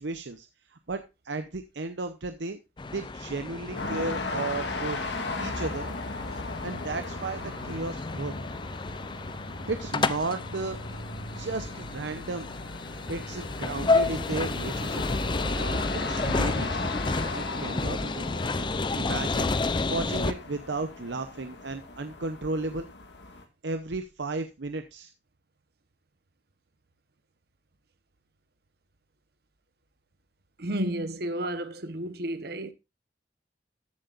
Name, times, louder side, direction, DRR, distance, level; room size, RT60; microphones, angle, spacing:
voice 1, 0.0-2.6 2.9-5.9 6.3-8.3 9.6-11.0 11.3-12.5 13.1-16.9 17.3-18.7 18.9-22.9 23.6-25.1, right 3 dB, 80° right, 0.8 m, -34 dB
sound 1, 2.8-20.3, left 3 dB, 25° left, 0.5 m, -31 dB
sound 2, 3.7-23.4, left 3 dB, 75° left, 1.8 m, -37 dB
voice 2, 30.6-32.7, right 1 dB, 60° right, 1.1 m, -32 dB
14.0 x 7.7 x 2.5 m
head